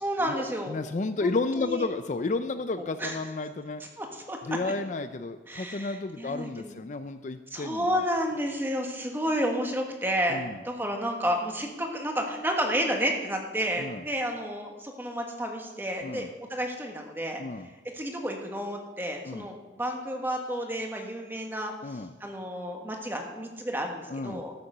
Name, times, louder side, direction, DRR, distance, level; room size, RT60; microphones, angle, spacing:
voice 1, 0.0-0.8 1.2-1.8 3.0-3.1 4.0-4.4 4.6-4.7 5.5-6.8 7.5-10.4 10.6-17.4 17.9-21.7 22.2-24.5, equal, 10° right, 2 dB, 1.5 m, -31 dB
voice 2, 0.7-3.8 4.4-8.0 10.3-10.6 13.8-14.0 16.0-16.3 17.4-17.7 19.3-19.5 21.8-22.1 24.1-24.4, left 3 dB, 40° left, 10 dB, 0.4 m, -32 dB
13.5 x 6.9 x 6.6 m, 1.2 s
head